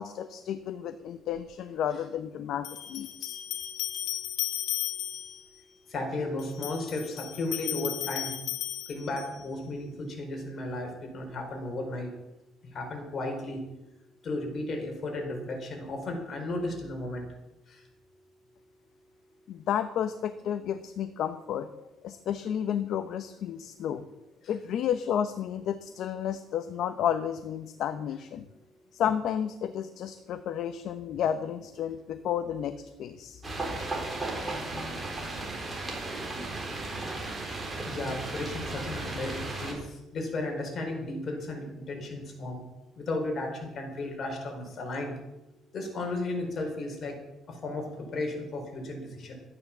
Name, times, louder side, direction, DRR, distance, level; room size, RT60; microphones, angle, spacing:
voice 1, 0.0-3.4 19.5-21.7 22.0-24.1 24.5-28.5 28.9-33.4, left 9 dB, 60° left, 10 dB, 0.8 m, -32 dB
sound 1, 1.4-1.5 2.6-5.5 6.4-9.5, left 12 dB, 80° left, 1.6 m, -35 dB
voice 2, 5.9-8.4 8.9-12.1 12.7-13.7 14.2-17.3 17.7-17.8 37.8-42.6 42.9-45.2 45.7-47.1 47.5-49.3, left 2 dB, 40° left, 2 dB, 4.4 m, -34 dB
sound 2, 33.4-39.7, right 2 dB, 20° right, 3.8 m, -35 dB
12.5 x 9.5 x 7.3 m, 0.97 s
cardioid pair, 130°, 0 cm